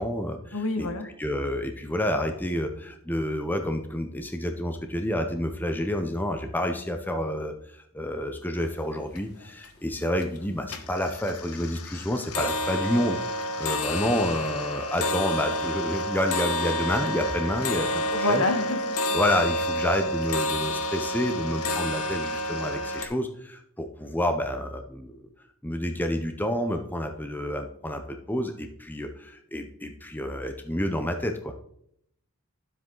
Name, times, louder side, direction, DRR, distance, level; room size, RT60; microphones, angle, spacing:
voice 1, 0.0-0.9 1.2-13.2 13.6-18.4 19.1-25.2 25.6-31.5, left 1 dB, 10° left, 6 dB, 0.7 m, -29 dB
voice 2, 0.5-1.1 18.1-19.2, left 2 dB, 70° left, 7 dB, 1.4 m, -27 dB
sound 1, 8.7-8.8 9.1-9.7 10.1-10.4 10.7-23.1, left 1 dB, 85° left, 1.2 m, -29 dB
12.0 x 7.6 x 3.8 m, 0.71 s
head